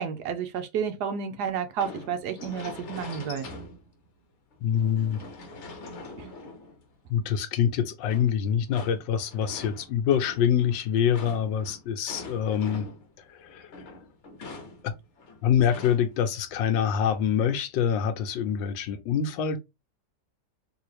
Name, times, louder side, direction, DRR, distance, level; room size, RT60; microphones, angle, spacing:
voice 1, 0.0-3.5 6.2-6.3, right 7 dB, 70° right, 1.2 m, -31 dB
sound 1, 1.8-4.1 4.5-7.1 8.0-13.2 13.5-16.3 16.6-16.7 17.2-17.6, left 3 dB, 50° left, 1.0 m, -44 dB
voice 2, 4.6-5.2 7.1-12.9 13.4-13.7 14.8-14.9 15.4-19.6, left 8 dB, 85° left, 1.4 m, -25 dB
3.7 x 2.7 x 3.2 m
omnidirectional pair, 2.0 m